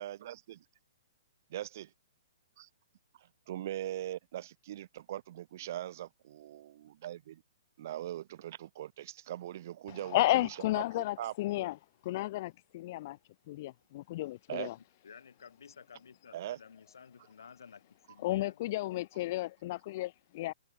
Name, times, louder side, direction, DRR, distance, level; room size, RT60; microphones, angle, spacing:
voice 1, 0.0-0.6 1.5-1.9 2.6-2.7 3.5-7.4 7.8-11.7 14.5-14.7 16.3-16.6, right 12 dB, 45° right, 0.9 m, -41 dB
voice 2, 9.9-11.7 12.0-13.2 13.5-14.7 18.2-20.5, left 16 dB, 40° left, 0.6 m, -33 dB
voice 3, 15.0-18.6, left 6 dB, 85° left, 5.5 m, -54 dB
hypercardioid pair, 160°, 2 cm